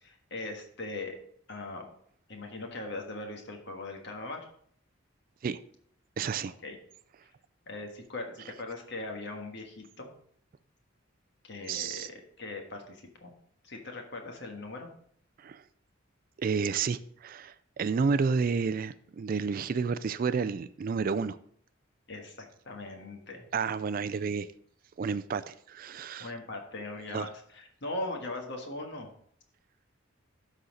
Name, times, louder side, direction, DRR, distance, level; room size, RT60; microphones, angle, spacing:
voice 1, 0.0-1.2 1.5-1.8 2.3-4.5 6.6-6.8 7.7-10.1 11.4-13.3 13.6-14.9 22.1-23.5 26.2-29.1, left 2 dB, 55° left, 2 dB, 1.5 m, -40 dB
voice 2, 6.2-6.5 11.7-12.1 15.4-15.6 16.4-21.4 23.5-24.5 25.0-26.3 27.1-27.3, right 5 dB, 45° right, 15 dB, 0.3 m, -30 dB
12.5 x 4.2 x 3.9 m, 0.64 s
head